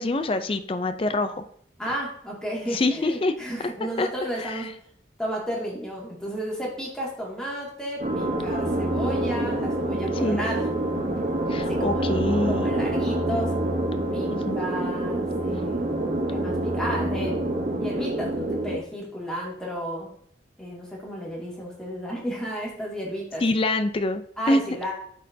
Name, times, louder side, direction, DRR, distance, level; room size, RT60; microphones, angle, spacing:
voice 1, 0.0-1.4 1.9-2.0 2.7-3.3 4.0-4.1 4.4-4.6 10.2-10.4 11.5-12.7 14.3-14.6 23.4-24.6, left 2 dB, 30° left, 10 dB, 0.4 m, -25 dB
voice 2, 1.8-4.7 5.2-10.7 11.7-12.1 12.5-13.5 14.1-17.4 17.6-20.1 20.6-23.4 24.4-24.9, equal, 5° left, -4 dB, 2.1 m, -33 dB
sound 1, 8.0-18.8, right 1 dB, 40° right, 0.9 m, -26 dB
12.5 x 4.3 x 2.7 m, 0.64 s
head